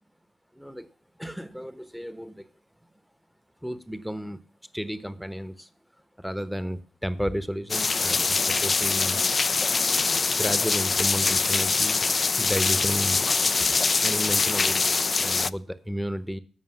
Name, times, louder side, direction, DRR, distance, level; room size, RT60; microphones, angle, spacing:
voice 1, 0.5-0.9 1.2-2.5 3.6-4.4 4.7-5.7 6.2-9.2 10.3-12.0 12.4-13.2 13.6-16.4, equal, ahead, 14 dB, 1.1 m, -33 dB
sound 1, 7.7-15.5, left 4 dB, 45° left, 0.4 m, -23 dB
15.0 x 5.6 x 5.8 m, 0.41 s
supercardioid pair, 40°, 0 cm